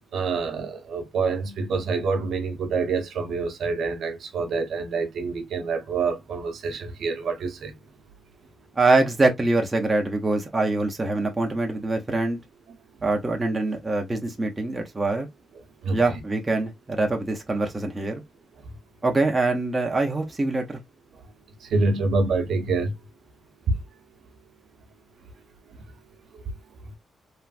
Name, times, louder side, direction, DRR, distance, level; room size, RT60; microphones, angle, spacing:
voice 1, 0.0-7.7 15.8-16.0 21.6-22.9 23.7-23.8, right 4 dB, 70° right, 0.8 m, -26 dB
voice 2, 8.8-12.4 13.0-15.3 15.9-18.2 19.0-20.8, right 2 dB, 15° right, 0.5 m, -24 dB
3.1 x 2.5 x 2.4 m
wide cardioid pair, 180°, 0 cm